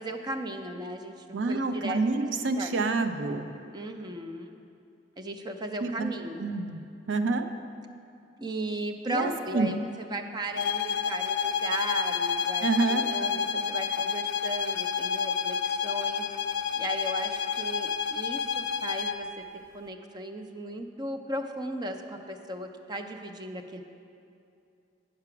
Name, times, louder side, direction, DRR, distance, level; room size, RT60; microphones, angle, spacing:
voice 1, 0.0-2.0 2.6-2.7 3.7-4.5 5.2-6.5 8.4-16.3 16.8-19.4 19.7-23.8, right 1 dB, 25° right, 5 dB, 0.5 m, -36 dB
voice 2, 1.3-3.5 5.8-6.1 6.4-6.8 7.1-7.5 9.1-9.7 12.6-13.0, right 3 dB, 75° right, 8 dB, 0.5 m, -27 dB
sound 1, 10.6-19.3, left 6 dB, 60° left, 0.4 m, -29 dB
8.7 x 5.8 x 5.8 m, 2.6 s
head